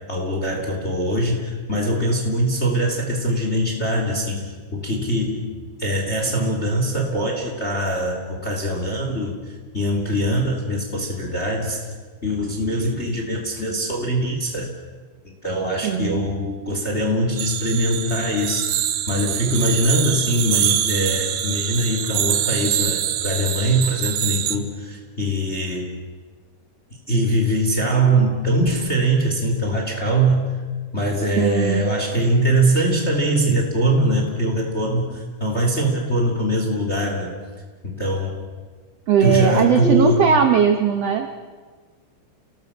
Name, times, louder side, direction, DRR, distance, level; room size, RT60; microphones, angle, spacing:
voice 1, 0.1-5.5 5.8-9.4 9.7-11.9 12.2-14.7 15.4-26.0 27.1-30.4 30.9-37.3 37.8-38.4 39.2-40.4, right 1 dB, 20° left, 1 dB, 3.0 m, -22 dB
voice 2, 15.8-16.3 31.4-31.9 39.1-41.3, right 7 dB, 65° right, 5 dB, 1.6 m, -18 dB
sound 1, 17.4-24.6, right 11 dB, 80° right, 3.1 m, -24 dB
30.0 x 20.0 x 7.4 m, 1.5 s
omnidirectional pair, 4.5 m